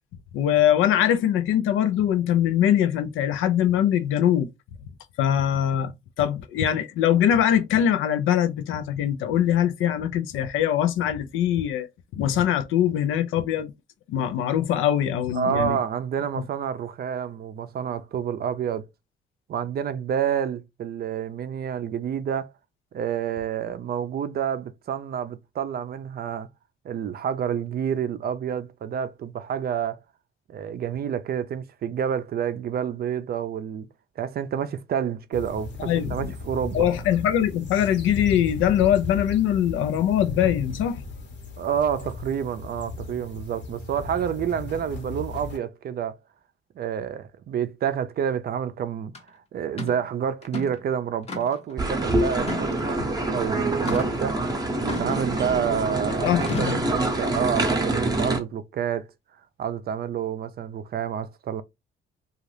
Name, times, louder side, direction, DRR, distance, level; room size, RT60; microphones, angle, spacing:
voice 1, 0.3-4.5 5.2-5.9 6.2-11.9 12.1-13.7 14.1-15.8 35.8-36.3 36.7-41.0 56.1-56.8, left 10 dB, 85° left, 0.5 m, -22 dB
voice 2, 15.3-18.9 19.5-22.5 22.9-26.5 26.8-30.0 30.5-33.9 34.2-36.9 41.6-46.2 46.8-54.5 55.0-59.1 59.6-61.6, right 8 dB, 50° right, 0.5 m, -29 dB
sound 1, 35.3-45.6, left 3 dB, 60° left, 1.0 m, -36 dB
sound 2, 49.1-49.2 49.8-50.0 50.4-50.8 51.3-51.7 52.4-53.1 53.9-54.2 54.9-55.7 56.4-56.9, left 3 dB, 30° left, 0.7 m, -34 dB
sound 3, 51.8-58.4, right 2 dB, 20° right, 0.7 m, -26 dB
2.6 x 2.4 x 3.2 m
cardioid pair, 90°, 20 cm